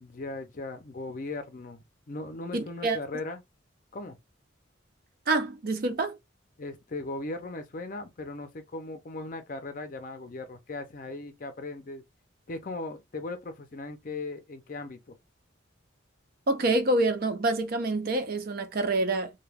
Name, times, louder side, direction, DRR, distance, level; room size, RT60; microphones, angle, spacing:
voice 1, 0.0-3.4 3.9-4.2 6.6-12.0 12.5-15.1, left 2 dB, 40° left, 0.5 m, -38 dB
voice 2, 2.5-3.0 5.3-6.2 16.5-19.3, right 2 dB, 50° right, 0.5 m, -27 dB
2.2 x 2.2 x 3.2 m
head